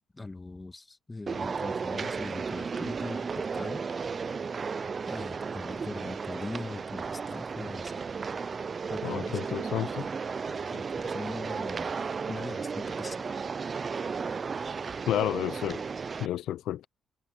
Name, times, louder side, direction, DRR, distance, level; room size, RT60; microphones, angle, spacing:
voice 1, 0.0-3.8 5.1-8.0 8.9-9.7 10.5-11.9 12.3-13.3, left 2 dB, 20° left, 1.9 m, -41 dB
sound 1, 1.3-16.3, right 5 dB, 40° right, 0.5 m, -34 dB
voice 2, 9.0-10.1 15.1-15.8 16.2-16.8, left 12 dB, 80° left, 0.6 m, -31 dB
cardioid pair, 90°, 0 cm